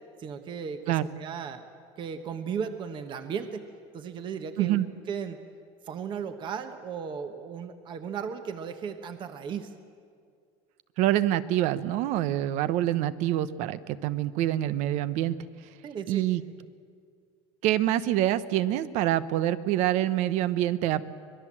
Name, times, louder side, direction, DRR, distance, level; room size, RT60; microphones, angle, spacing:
voice 1, 0.2-1.7 2.0-3.6 3.9-4.8 5.1-5.4 5.8-9.7 15.8-16.2, right 7 dB, 35° right, 8 dB, 1.2 m, -35 dB
voice 2, 11.0-15.4 16.1-16.4 17.6-21.1, right 13 dB, 60° right, 14 dB, 0.9 m, -26 dB
25.5 x 20.0 x 7.5 m, 2.2 s
cardioid pair, 145°, 14 cm